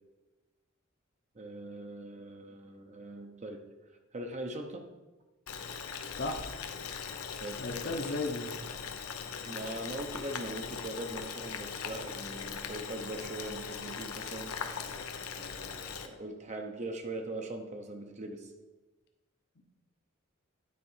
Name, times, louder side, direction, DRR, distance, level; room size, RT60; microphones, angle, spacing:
voice 1, 1.3-3.6 4.1-4.8 7.4-8.0 9.5-14.5 15.4-18.5, right 1 dB, 35° right, 4 dB, 0.7 m, -41 dB
Boiling, 5.5-16.1, left 6 dB, 90° left, 0.8 m, -40 dB
voice 2, 6.1-6.5 7.1-7.3 7.6-8.5, left 2 dB, 50° left, 4 dB, 0.9 m, -35 dB
9.7 x 4.4 x 5.6 m, 1.2 s
head